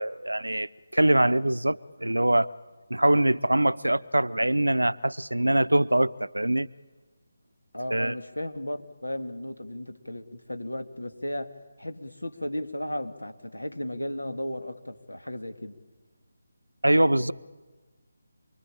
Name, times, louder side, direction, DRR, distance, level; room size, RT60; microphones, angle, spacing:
voice 1, 0.0-2.5 2.9-6.7 7.9-8.2 16.8-17.3, right 1 dB, 90° right, 0.8 m, -23 dB
voice 2, 7.7-15.7, left 1 dB, 90° left, 2.3 m, -35 dB
28.0 x 22.5 x 8.7 m
figure-of-eight pair, 155°, 0 cm